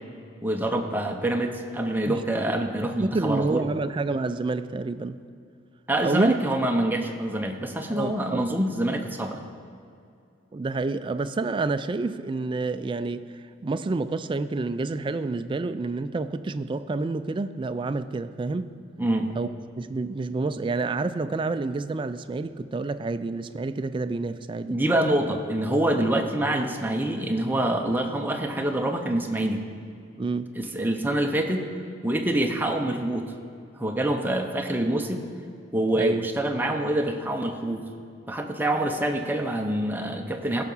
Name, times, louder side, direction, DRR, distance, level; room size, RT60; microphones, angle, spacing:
voice 1, 0.4-3.6 5.9-9.4 19.0-19.3 24.7-29.6 30.6-31.6 32.0-33.3 33.8-35.2 35.7-37.8 38.3-40.6, right 1 dB, 10° right, 0.7 m, -26 dB
voice 2, 2.8-5.2 6.0-6.4 7.9-8.4 10.5-13.3 13.6-18.7 19.3-19.5 19.8-24.7 30.2-30.5 36.0-36.2, right 3 dB, 25° right, 0.3 m, -28 dB
15.5 x 5.7 x 5.5 m
head